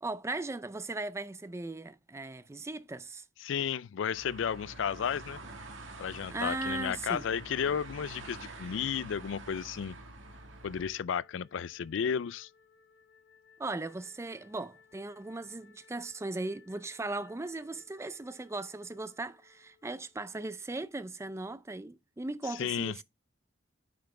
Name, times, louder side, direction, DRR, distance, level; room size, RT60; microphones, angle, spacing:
voice 1, 0.0-3.2 6.3-7.2 13.6-23.0, right 2 dB, 15° right, 0.4 m, -38 dB
voice 2, 3.4-5.4 6.0-9.9 10.6-12.5 22.6-23.0, left 7 dB, 70° left, 0.4 m, -33 dB
sound 1, 4.1-10.9, right 2 dB, 75° right, 1.7 m, -47 dB
Wind instrument woodwind instrument, 10.2-20.6, left 5 dB, 85° left, 3.0 m, -63 dB
8.6 x 6.0 x 3.3 m
head